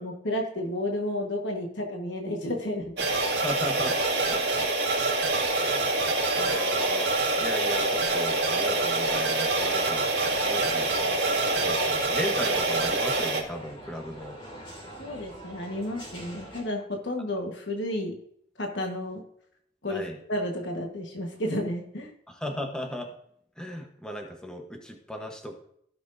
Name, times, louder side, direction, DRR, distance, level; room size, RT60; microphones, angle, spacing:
voice 1, 0.0-3.1 15.0-18.1 18.6-19.2 19.8-22.1, left 1 dB, 85° left, 2 dB, 1.4 m, -32 dB
sound 1, 3.0-13.4, right 2 dB, 80° right, 1.9 m, -25 dB
voice 2, 3.3-4.0 4.3-4.6 5.5-10.9 11.5-14.4 19.9-20.2 22.3-23.1 23.6-25.6, equal, 5° left, 2 dB, 1.0 m, -37 dB
sound 2, 9.6-16.6, right 1 dB, 25° left, 2.7 m, -43 dB
16.0 x 6.1 x 2.6 m, 0.69 s
head